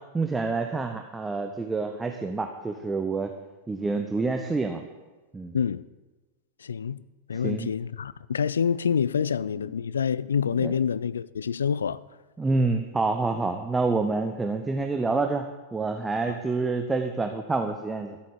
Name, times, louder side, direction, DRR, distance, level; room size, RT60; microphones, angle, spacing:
voice 1, 0.1-3.3 3.7-4.8 5.3-5.6 7.3-7.7 10.6-10.7 12.4-15.5 15.7-18.2, right 3 dB, 10° right, 0.9 m, -27 dB
voice 2, 6.6-7.0 7.3-12.0, left 7 dB, 70° left, 0.4 m, -27 dB
13.5 x 8.4 x 8.4 m
figure-of-eight pair, 90°, 0 cm